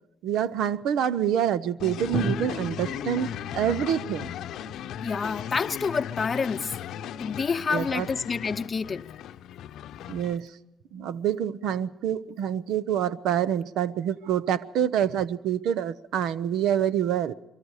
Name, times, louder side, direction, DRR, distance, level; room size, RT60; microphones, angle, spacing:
voice 1, 0.2-4.4 7.7-8.1 10.1-10.5 10.9-17.3, right 9 dB, 85° right, 0.7 m, -26 dB
sound 1, 1.8-10.4, left 10 dB, 80° left, 0.7 m, -37 dB
Drum, 2.1-6.1, equal, 45° right, 3.9 m, -37 dB
voice 2, 5.0-6.7 7.2-9.1, left 5 dB, 35° left, 0.7 m, -28 dB
25.0 x 22.5 x 4.8 m
cardioid pair, 90°, 0 cm